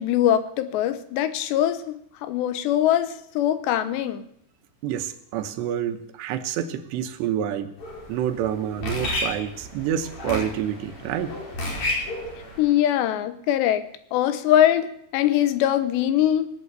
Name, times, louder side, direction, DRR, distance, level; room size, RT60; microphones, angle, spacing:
voice 1, 0.0-4.2 12.6-13.9 14.1-16.5, left 11 dB, 80° left, 12 dB, 3.1 m, -22 dB
voice 2, 4.8-7.7 8.1-11.4, right 10 dB, 80° right, 9 dB, 3.1 m, -28 dB
sound 1, 7.8-12.7, left 1 dB, 55° left, 6.8 m, -32 dB
19.5 x 8.8 x 8.1 m, 0.70 s
omnidirectional pair, 4.9 m